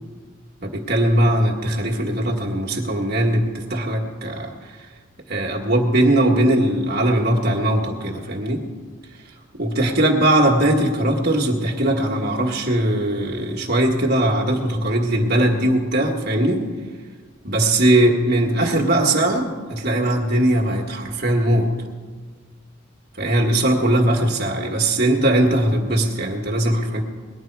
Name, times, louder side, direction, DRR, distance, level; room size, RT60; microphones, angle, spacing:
voice 1, 0.6-4.5 5.3-8.6 9.6-16.6 17.4-21.7 23.2-27.0, right 1 dB, 50° right, -1 dB, 1.6 m, -20 dB
19.5 x 11.0 x 4.7 m, 1.5 s
head